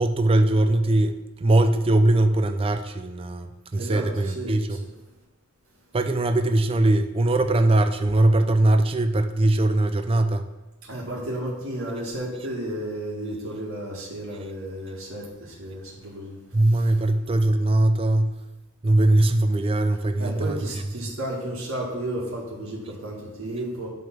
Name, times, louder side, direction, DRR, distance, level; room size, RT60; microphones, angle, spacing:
voice 1, 0.0-4.8 5.9-10.5 16.5-18.4 18.8-20.8, right 1 dB, 25° right, 7 dB, 0.4 m, -21 dB
voice 2, 3.8-4.5 10.9-16.4 16.7-16.8 20.2-23.9, right 1 dB, 85° right, -5 dB, 1.9 m, -33 dB
9.3 x 3.4 x 5.9 m, 1.1 s
head